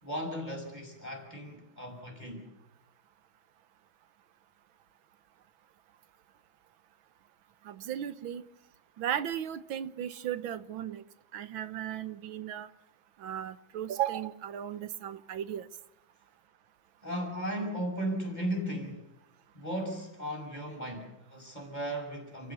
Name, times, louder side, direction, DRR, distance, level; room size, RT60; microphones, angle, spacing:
voice 1, 0.0-2.4 17.0-19.1 19.5-22.5, equal, 20° left, 6.0 m, -36 dB
voice 2, 7.7-8.4 9.0-11.0 11.3-12.7 13.2-15.7, right 10 dB, 80° right, 1.8 m, -35 dB
29.5 x 15.5 x 7.0 m
omnidirectional pair, 2.1 m